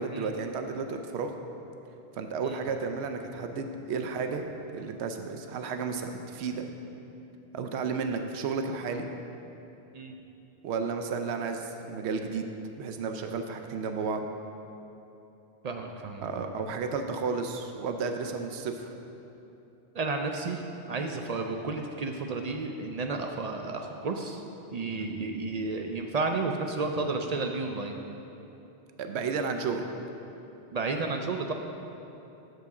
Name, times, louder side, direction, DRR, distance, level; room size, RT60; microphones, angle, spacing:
voice 1, 0.0-1.3 2.1-6.7 7.5-9.1 10.6-12.5 12.8-14.3 16.2-18.9 29.0-29.9, right 5 dB, 85° right, 6 dB, 0.9 m, -32 dB
voice 2, 15.6-16.3 19.9-24.4 24.7-28.0 30.7-31.5, right 3 dB, 55° right, 4 dB, 0.4 m, -32 dB
7.0 x 6.7 x 4.8 m, 3.0 s
omnidirectional pair, 1.1 m